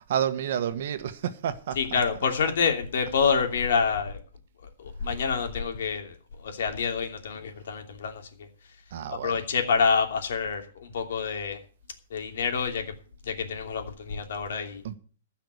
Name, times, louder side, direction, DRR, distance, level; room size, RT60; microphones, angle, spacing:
voice 1, 0.0-2.0 8.9-9.4 14.8-14.9, right 9 dB, 50° right, 1.4 m, -30 dB
voice 2, 1.8-4.2 4.8-8.2 9.2-11.6 12.1-12.9 13.3-14.8, left 5 dB, 65° left, 2.9 m, -27 dB
15.5 x 5.9 x 8.2 m
hypercardioid pair, 170°, 0 cm